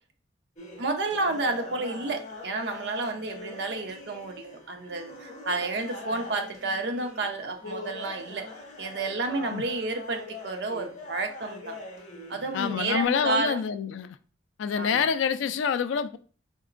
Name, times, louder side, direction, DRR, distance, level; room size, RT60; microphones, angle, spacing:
sound 1, 0.6-13.0, left 2 dB, 35° left, 1.1 m, -42 dB
voice 1, 0.8-8.5 8.8-11.8 12.3-13.6 14.8-15.0, right 3 dB, 60° right, 0.5 m, -31 dB
voice 2, 12.5-14.2 14.6-16.2, left 7 dB, 80° left, 0.3 m, -27 dB
4.2 x 2.9 x 2.5 m
head